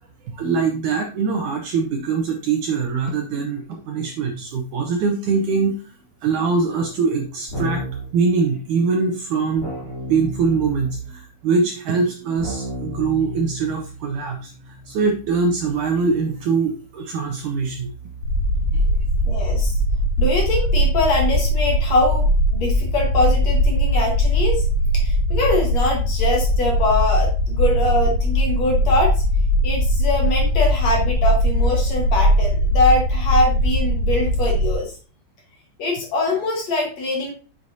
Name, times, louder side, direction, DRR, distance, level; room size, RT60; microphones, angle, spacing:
voice 1, 0.2-6.0 6.2-7.8 8.1-9.7 10.1-17.9 18.7-18.8, right 4 dB, 70° right, 3 dB, 1.9 m, -23 dB
Keyboard (musical), 7.5-8.1 9.6-11.2 12.4-19.4, right 1 dB, 25° left, 3.2 m, -34 dB
sound 1, 18.2-34.7, equal, 75° left, 3.2 m, -20 dB
voice 2, 19.3-19.8 20.2-24.7 24.9-29.2 29.6-34.9 35.8-37.3, left 2 dB, 55° left, 0 dB, 2.2 m, -23 dB
8.6 x 6.4 x 2.7 m, 0.37 s
omnidirectional pair, 4.4 m